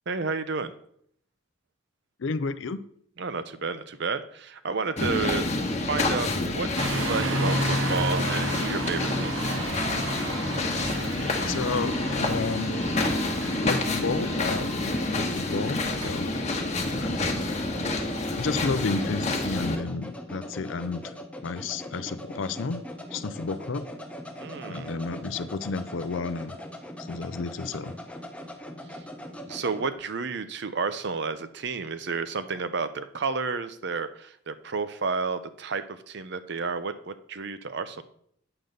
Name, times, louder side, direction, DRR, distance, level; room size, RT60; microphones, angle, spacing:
voice 1, 0.1-0.7 3.2-5.5 5.9-9.6 24.4-24.9 28.9-29.0 29.5-38.0, right 4 dB, 55° right, 12 dB, 0.6 m, -31 dB
voice 2, 2.2-2.8 11.5-12.8 13.6-16.3 16.9-17.2 18.4-21.1 21.4-22.8 23.1-23.9 24.7-26.6 27.1-27.9, left 4 dB, 65° left, 13 dB, 0.5 m, -31 dB
sound 1, 5.0-19.8, left 2 dB, 35° left, 1.2 m, -28 dB
sound 2, 6.8-18.5, right 1 dB, 75° right, 1.0 m, -33 dB
sound 3, 16.6-29.9, equal, 5° left, 0.9 m, -41 dB
8.8 x 3.9 x 6.6 m, 0.65 s
head